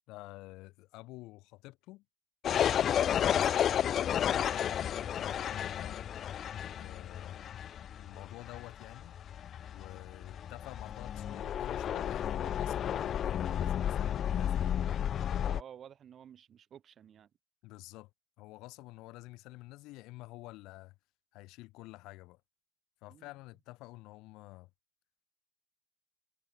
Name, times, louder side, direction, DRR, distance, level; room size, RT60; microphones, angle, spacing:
voice 1, 0.1-2.0 2.5-6.1 6.8-7.5 8.0-9.2 9.7-14.7 17.6-18.1 18.4-20.9 21.3-22.4 23.0-24.7, left 20 dB, 55° left, 0.9 m, -49 dB
sound 1, 2.4-15.6, left 9 dB, 40° left, 0.4 m, -32 dB
voice 2, 15.4-17.3 23.1-23.3, right 9 dB, 35° right, 2.3 m, -52 dB
hypercardioid pair, 85°, 0 cm